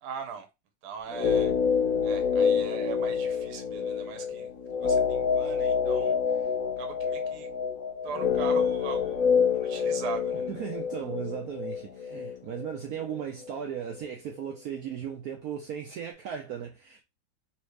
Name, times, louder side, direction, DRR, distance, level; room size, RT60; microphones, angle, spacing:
voice 1, 0.0-0.5 0.8-1.5 2.0-6.2 6.8-7.5 8.0-9.2 9.5-10.5, right 7 dB, 65° right, 1.3 m, -40 dB
sound 1, 1.1-13.2 13.5-13.6, left 6 dB, 60° left, 0.9 m, -27 dB
voice 2, 10.5-17.0, right 9 dB, 80° right, 0.8 m, -36 dB
3.2 x 2.9 x 3.2 m
omnidirectional pair, 2.1 m